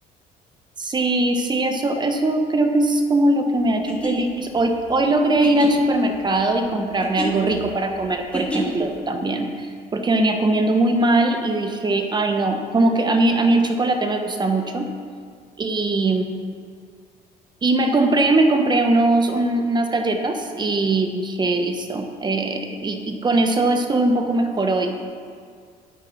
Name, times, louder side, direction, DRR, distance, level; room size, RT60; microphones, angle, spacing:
voice 1, 0.8-14.9 15.6-16.2 17.6-25.0, right 2 dB, 25° right, 5 dB, 1.2 m, -20 dB
sound 1, 3.7-9.0, equal, 5° left, 2.2 m, -31 dB
9.3 x 8.9 x 6.0 m, 2.1 s
cardioid pair, 110°, 17 cm